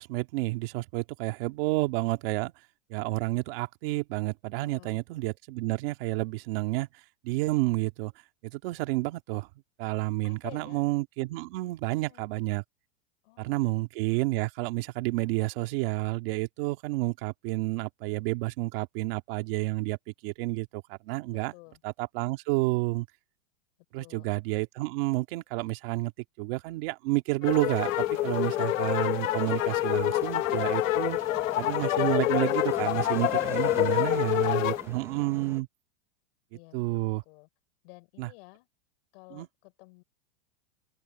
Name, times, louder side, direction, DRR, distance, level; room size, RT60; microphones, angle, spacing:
voice 1, 0.0-2.5 2.9-6.9 7.2-8.1 8.4-9.5 9.8-12.6 13.4-20.0 20.2-21.5 21.8-23.1 23.9-26.1 26.4-31.2 31.6-35.7 36.7-37.2 38.2-38.3 39.3-39.5, right 21 dB, 45° right, 2.1 m, -30 dB
voice 2, 4.6-5.0 10.2-10.8 11.8-12.2 13.2-13.8 21.3-21.8 23.9-24.3 33.4-35.6 36.5-37.5 37.8-38.7 39.1-40.0, left 28 dB, 50° left, 6.2 m, -52 dB
sound 1, 27.4-34.8, left 16 dB, 85° left, 1.0 m, -27 dB
sound 2, 27.9-35.6, right 4 dB, 5° right, 0.8 m, -45 dB
open air
supercardioid pair, 165°, 39 cm